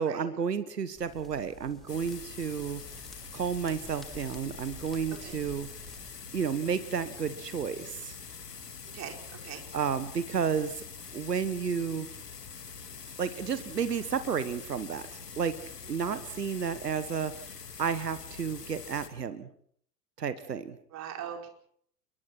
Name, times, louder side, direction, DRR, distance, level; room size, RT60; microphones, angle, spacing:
voice 1, 0.0-2.8 3.3-5.9 6.3-8.2 9.7-10.8 11.1-12.1 13.2-15.1 15.4-15.5 15.9-19.5 20.2-20.8, right 6 dB, 80° right, 13 dB, 1.5 m, -32 dB
sound 1, 0.9-6.2, equal, ahead, 4.3 m, -51 dB
sound 2, 1.9-19.1, left 6 dB, 75° left, 2.5 m, -45 dB
voice 2, 8.9-9.6 15.8-15.9 20.9-21.5, right 9 dB, 35° right, 3 dB, 4.8 m, -41 dB
28.0 x 23.0 x 4.5 m, 0.62 s
figure-of-eight pair, 85°, 48 cm